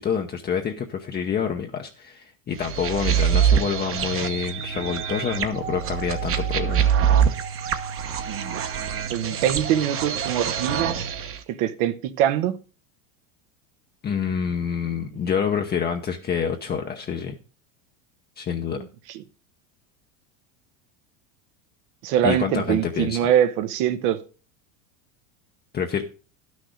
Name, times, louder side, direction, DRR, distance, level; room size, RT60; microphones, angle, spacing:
voice 1, 0.0-6.8 14.0-17.3 18.4-18.8 22.2-23.2 25.7-26.0, left 7 dB, 25° left, 0.9 m, -27 dB
sound 1, 2.6-11.4, right 8 dB, 30° right, 1.1 m, -24 dB
voice 2, 8.2-8.7 9.1-11.1 11.5-12.5 18.7-19.2 22.0-24.2, right 10 dB, 65° right, 1.1 m, -24 dB
11.5 x 6.3 x 5.1 m
supercardioid pair, 125°, 40 cm